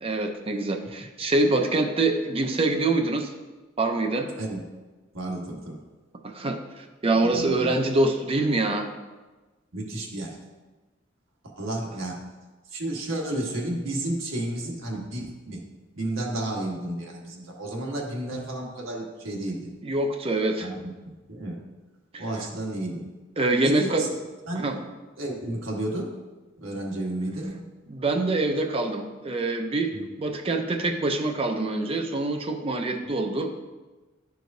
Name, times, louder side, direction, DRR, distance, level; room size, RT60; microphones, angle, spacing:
voice 1, 0.0-3.3 3.8-4.3 6.2-8.9 19.8-20.7 22.1-22.2 23.4-24.1 24.6-24.8 27.9-29.9 30.2-33.6, right 2 dB, 30° right, 4 dB, 0.5 m, -25 dB
voice 2, 5.1-5.8 7.2-7.7 9.7-10.4 11.6-12.2 12.7-15.6 15.9-19.7 20.6-20.8 21.3-21.6 22.2-23.0 23.6-24.1 24.5-24.6 25.2-26.1 26.6-27.6 29.9-30.0, right 1 dB, 85° right, -2 dB, 1.4 m, -32 dB
11.5 x 4.7 x 2.6 m, 1.2 s
head